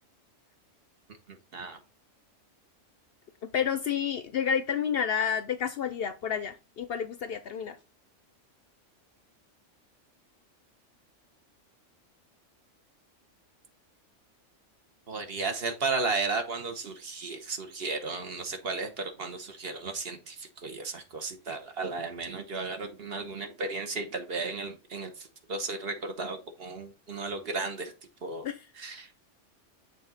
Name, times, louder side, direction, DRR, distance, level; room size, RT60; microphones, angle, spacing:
voice 1, 1.3-1.8 15.1-27.9 28.2-28.4 28.8-29.1, right 3 dB, 55° right, 1.2 m, -34 dB
voice 2, 3.4-7.8 28.4-28.6, left 7 dB, 60° left, 0.7 m, -30 dB
6.9 x 3.8 x 4.0 m
omnidirectional pair, 1.3 m